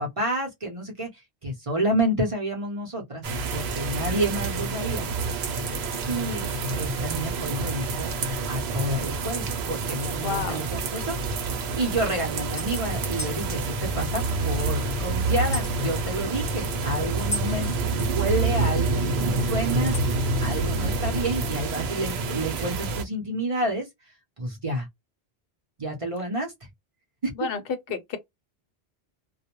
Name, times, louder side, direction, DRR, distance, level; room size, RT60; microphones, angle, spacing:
voice 1, 0.0-3.2 3.5-5.1 6.0-6.5 6.8-8.1 8.5-11.2 11.4-17.7 18.0-19.9 20.4-23.9 24.4-24.9 25.8-26.5 27.2-27.5, right 1 dB, 35° right, 0.7 m, -29 dB
sound 1, 3.2-23.0, right 3 dB, 75° right, 0.9 m, -28 dB
voice 2, 10.2-10.6 27.4-27.6 27.9-28.2, left 5 dB, 65° left, 0.7 m, -29 dB
sound 2, 12.6-12.8 13.2-13.4 15.5-15.8 17.3-17.5 19.9-20.2, equal, 30° left, 0.6 m, -34 dB
2.3 x 2.1 x 2.9 m
omnidirectional pair, 1.1 m